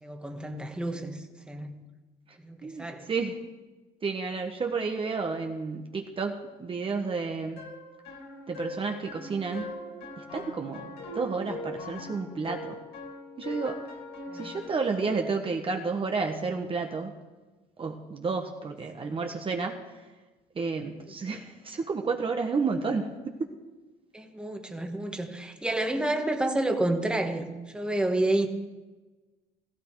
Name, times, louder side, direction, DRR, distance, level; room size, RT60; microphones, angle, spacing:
voice 1, 0.0-1.8 2.4-3.1 14.3-14.6 19.0-19.2 24.1-28.5, right 1 dB, 5° right, 3 dB, 1.6 m, -30 dB
voice 2, 2.6-3.4 4.0-7.6 8.5-9.7 10.2-10.9 11.1-12.8 13.4-13.8 14.3-17.1 17.8-19.8 20.5-23.4, right 4 dB, 30° right, 3 dB, 1.4 m, -31 dB
sound 1, 7.6-15.2, left 2 dB, 80° left, 4.0 m, -41 dB
16.0 x 15.0 x 4.8 m, 1.2 s
cardioid pair, 110°, 17 cm